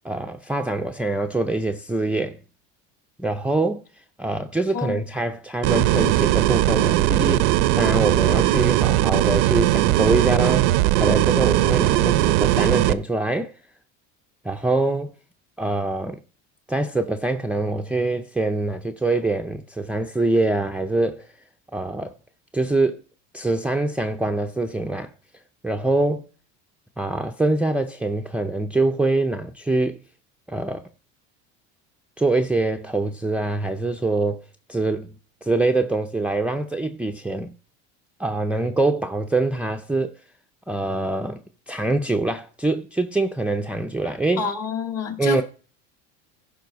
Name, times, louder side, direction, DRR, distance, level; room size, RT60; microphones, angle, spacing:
voice 1, 0.0-2.4 3.2-3.8 4.2-10.7 11.0-13.6 14.4-15.1 15.6-16.2 16.7-21.3 21.7-22.1 22.5-23.0 23.3-25.1 25.6-26.3 27.0-30.0 30.5-30.8 32.2-34.4 34.7-35.1 35.4-37.5 38.2-40.1 40.7-41.4 41.7-44.5 45.2-45.4, right 2 dB, 5° right, 0.5 m, -24 dB
sound 1, 5.6-12.9, right 14 dB, 85° right, 0.7 m, -19 dB
voice 2, 44.4-45.4, left 5 dB, 40° left, 2.2 m, -27 dB
15.0 x 5.4 x 4.0 m
supercardioid pair, 110°, 36 cm